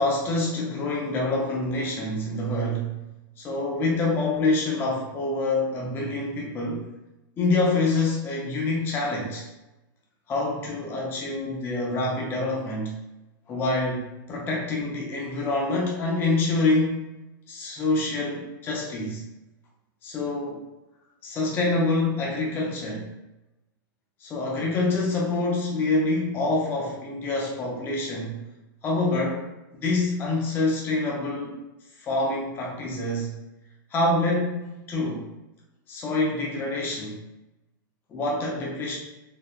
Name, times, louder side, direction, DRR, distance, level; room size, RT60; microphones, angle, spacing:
voice 1, 0.0-3.0 3.4-6.8 7.4-9.5 10.3-13.0 13.5-17.0 17.5-19.2 20.0-20.6 21.2-23.1 24.2-28.4 28.8-29.5 29.8-31.6 32.0-33.3 33.9-35.3 35.9-37.2 38.1-39.0, left 2 dB, 20° left, -2 dB, 0.4 m, -26 dB
3.3 x 2.1 x 2.3 m, 0.99 s
hypercardioid pair, 145°, 12 cm